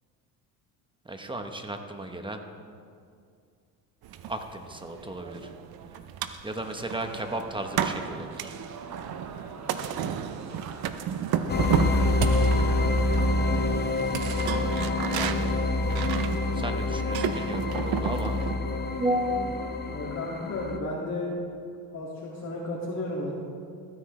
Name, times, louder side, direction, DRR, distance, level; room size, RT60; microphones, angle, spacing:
voice 1, 1.0-2.4 4.3-5.5 6.4-8.5 15.1-15.5 16.5-18.4 19.0-19.5, right 1 dB, 10° right, 6 dB, 1.0 m, -33 dB
sound 1, 4.0-18.6, right 8 dB, 60° right, 0.7 m, -33 dB
sound 2, 6.9-14.0, right 5 dB, 40° right, 1.1 m, -44 dB
sound 3, 11.5-20.8, left 2 dB, 25° left, 0.8 m, -27 dB
voice 2, 19.9-21.3 21.9-23.3, left 2 dB, 40° left, -6 dB, 2.4 m, -33 dB
15.0 x 9.7 x 3.3 m, 2.3 s
supercardioid pair, 90°, 42 cm